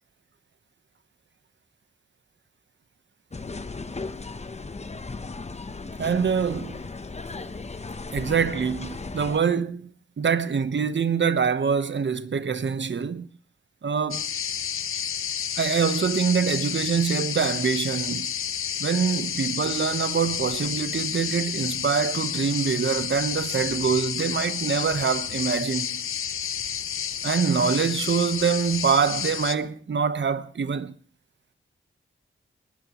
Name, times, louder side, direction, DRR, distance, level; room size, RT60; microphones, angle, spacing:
sound 1, 3.3-9.4, left 3 dB, 30° left, 1.0 m, -36 dB
voice 1, 6.0-6.9 8.1-9.9 10.2-13.3 13.8-14.3 15.6-18.3 18.8-26.0 27.2-30.9, right 6 dB, 60° right, 1.2 m, -25 dB
sound 2, 14.1-29.6, left 8 dB, 85° left, 0.7 m, -30 dB
22.0 x 20.0 x 3.1 m
wide cardioid pair, 75°, 21 cm